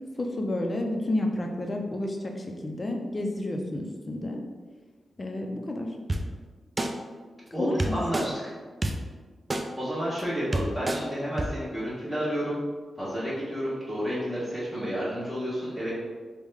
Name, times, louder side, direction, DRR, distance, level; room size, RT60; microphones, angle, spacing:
voice 1, 0.2-4.4 5.2-5.9 7.6-7.9, left 1 dB, 35° left, 2 dB, 0.5 m, -30 dB
sound 1, 6.1-6.2 6.8-6.9 7.8-8.3 8.8-8.9 9.5-9.6 10.2-10.3 10.5-11.0 11.4-11.5, right 2 dB, 35° right, 0.3 m, -27 dB
voice 2, 7.5-8.3 9.8-12.6 12.9-15.9, equal, ahead, -12 dB, 1.1 m, -30 dB
3.5 x 2.1 x 3.3 m, 1.5 s
cardioid pair, 60°, 0 cm